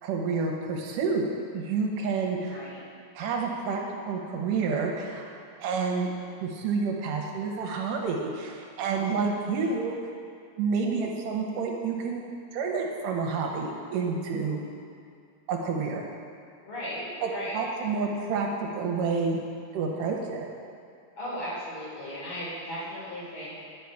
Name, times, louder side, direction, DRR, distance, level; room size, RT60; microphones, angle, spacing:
voice 1, 0.0-2.6 3.1-5.3 5.6-6.1 6.4-10.0 10.6-14.6 15.5-16.1 17.2-19.4 19.7-20.5, right 4 dB, 70° right, 0 dB, 2.3 m, -29 dB
voice 2, 2.3-2.8 8.9-9.0 9.3-9.7 16.6-17.6 21.2-23.6, equal, 45° left, -10 dB, 3.8 m, -37 dB
10.0 x 7.6 x 4.7 m, 2.4 s
omnidirectional pair, 4.3 m